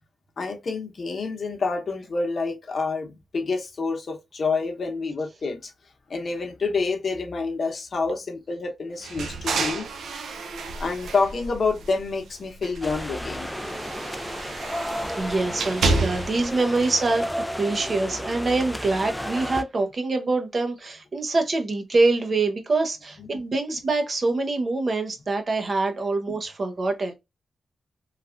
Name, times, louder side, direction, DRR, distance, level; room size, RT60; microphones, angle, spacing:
voice 1, 0.4-5.7 6.1-9.9 10.8-13.5 15.9-16.0 23.2-23.4 26.3-26.4, left 4 dB, 55° left, 0.8 m, -28 dB
sound 1, 9.0-12.2 12.6-16.5, right 3 dB, 85° right, 0.5 m, -30 dB
sound 2, 12.8-19.6, equal, ahead, 0.3 m, -33 dB
voice 2, 15.1-17.3 17.6-27.1, right 3 dB, 45° right, 0.7 m, -25 dB
3.2 x 2.3 x 2.4 m
cardioid pair, 80°, 0 cm